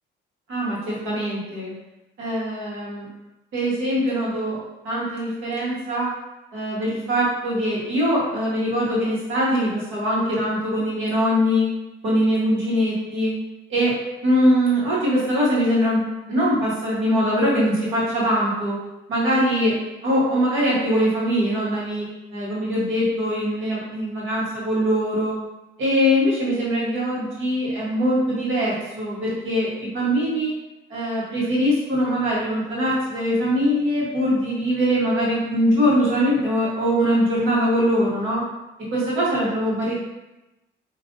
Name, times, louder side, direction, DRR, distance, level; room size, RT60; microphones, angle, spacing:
voice 1, 0.5-1.7 2.2-3.1 3.5-4.6 4.8-6.1 6.5-11.7 12.0-13.3 13.7-13.9 14.2-18.8 19.1-19.7 20.0-22.1 22.3-25.4 25.8-30.5 30.9-38.4 38.9-40.0, equal, 80° right, -6 dB, 1.3 m, -22 dB
3.6 x 2.6 x 2.6 m, 0.99 s
cardioid pair, 90°, 20 cm